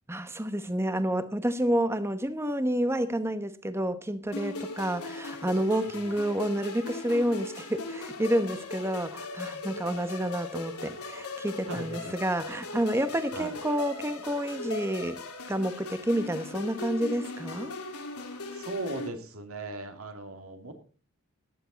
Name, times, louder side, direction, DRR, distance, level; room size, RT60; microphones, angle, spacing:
voice 1, 0.1-15.2 15.5-17.7, right 1 dB, 10° right, 1.0 m, -29 dB
sound 1, 4.3-19.1, left 2 dB, 85° left, 2.9 m, -39 dB
voice 2, 11.7-12.1 13.3-13.6 18.5-20.8, right 2 dB, 75° right, 2.7 m, -38 dB
15.0 x 11.0 x 4.1 m
head